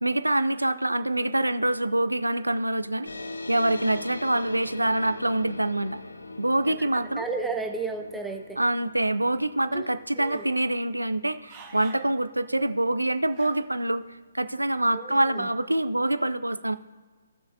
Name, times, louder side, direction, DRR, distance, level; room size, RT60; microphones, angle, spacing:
voice 1, 0.0-3.1 3.5-6.0 6.4-7.2 8.6-14.0 14.3-16.8, right 1 dB, 85° right, 14 dB, 0.5 m, -25 dB
sound 1, 3.0-14.0, left 2 dB, 80° left, 0.7 m, -42 dB
voice 2, 7.2-8.6 9.7-9.9 10.2-10.5 14.9-15.5, right 4 dB, 5° right, 3 dB, 0.8 m, -33 dB
sound 2, 10.2-10.6 11.2-12.1 12.6-12.7 13.3-13.9 15.1-15.5, right 5 dB, 25° right, 1.5 m, -48 dB
17.0 x 6.4 x 2.7 m, 1.4 s
figure-of-eight pair, 135°, 0 cm